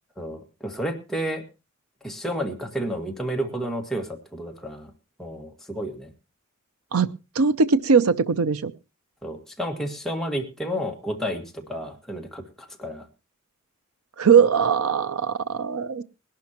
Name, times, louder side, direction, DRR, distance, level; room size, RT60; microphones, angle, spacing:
voice 1, 0.2-1.4 2.0-4.9 5.2-6.1 9.2-13.1, equal, ahead, 1 dB, 1.9 m, -31 dB
voice 2, 6.9-8.7 14.2-16.0, right 6 dB, 80° right, 13 dB, 0.6 m, -20 dB
20.0 x 11.5 x 3.0 m, 0.28 s
head